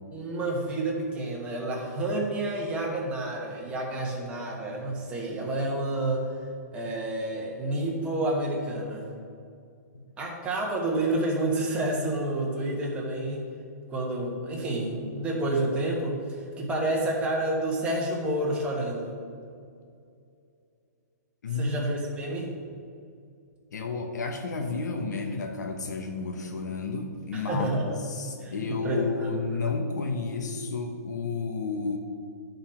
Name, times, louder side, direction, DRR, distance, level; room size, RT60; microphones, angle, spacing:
voice 1, 0.1-6.3 6.7-9.1 10.2-13.5 13.9-19.1 21.6-22.6 27.3-27.8 28.4-29.3, right 1 dB, 10° right, -2 dB, 1.2 m, -29 dB
voice 2, 21.4-21.8 23.7-32.0, left 4 dB, 85° left, 3 dB, 1.0 m, -31 dB
10.5 x 4.0 x 4.4 m, 2.4 s
hypercardioid pair, 155°, 9 cm